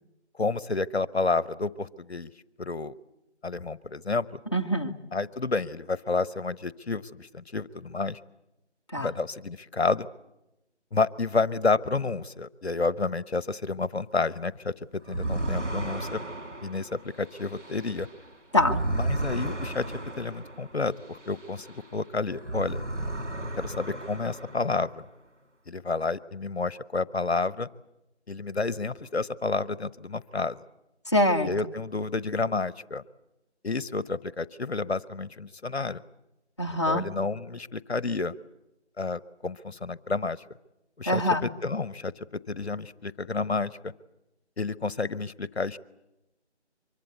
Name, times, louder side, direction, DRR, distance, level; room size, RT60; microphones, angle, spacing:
voice 1, 0.4-2.3 2.6-2.9 3.4-4.4 5.1-8.2 9.0-10.1 10.9-16.2 16.6-18.1 18.9-19.9 20.2-22.9 23.6-25.1 25.7-27.7 28.3-30.6 31.4-33.0 33.6-36.0 36.7-38.3 39.0-40.4 41.0-43.9 44.6-45.8, left 3 dB, 65° left, 19 dB, 1.0 m, -30 dB
voice 2, 4.5-4.9 8.9-9.1 18.5-18.8 31.1-31.5 36.6-37.1 41.1-41.4, left 1 dB, 25° left, 2 dB, 1.0 m, -24 dB
sound 1, 15.0-22.0 22.3-25.0, right 2 dB, 85° right, 2.5 m, -34 dB
24.5 x 23.0 x 8.1 m, 0.92 s
figure-of-eight pair, 160°, 35 cm